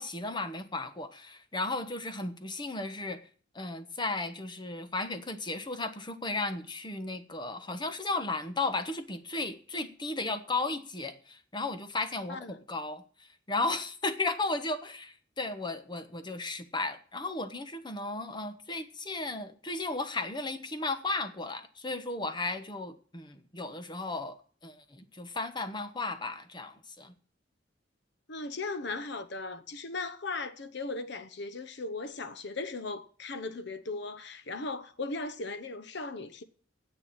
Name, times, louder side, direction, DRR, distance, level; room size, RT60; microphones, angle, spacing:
voice 1, 0.0-3.2 3.5-13.0 13.5-27.1, left 3 dB, 25° left, 1.1 m, -35 dB
voice 2, 28.3-36.4, left 3 dB, 60° left, 0.9 m, -37 dB
10.0 x 8.0 x 8.8 m
head